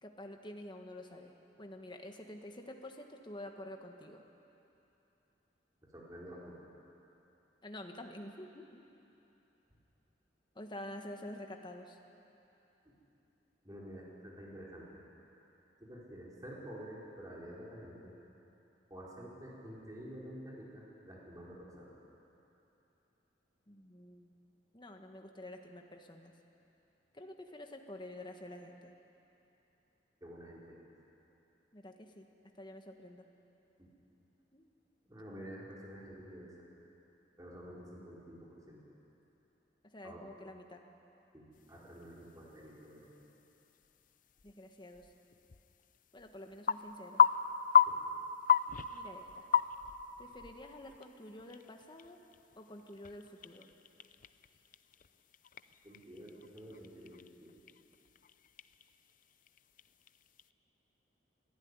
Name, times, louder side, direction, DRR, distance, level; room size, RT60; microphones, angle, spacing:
voice 1, 0.0-4.2 7.6-8.8 10.5-12.0 23.7-24.3 24.7-26.3 27.1-28.9 31.7-32.3 32.6-33.2 34.5-34.7 39.9-40.8 44.4-45.1 46.1-47.2 48.9-49.5 50.2-52.2 52.6-53.7, left 1 dB, 25° left, 4 dB, 1.6 m, -48 dB
voice 2, 5.9-6.6 12.8-12.9 13.6-15.0 15.8-18.1 18.9-22.0 30.2-30.8 33.8-33.9 35.1-36.5 37.4-38.8 40.0-40.2 41.3-43.1 47.8-48.0 55.8-57.5, equal, 20° right, -5 dB, 4.7 m, -49 dB
sound 1, 41.5-60.5, left 8 dB, 50° left, 0.6 m, -36 dB
24.5 x 14.5 x 9.8 m, 3.0 s
head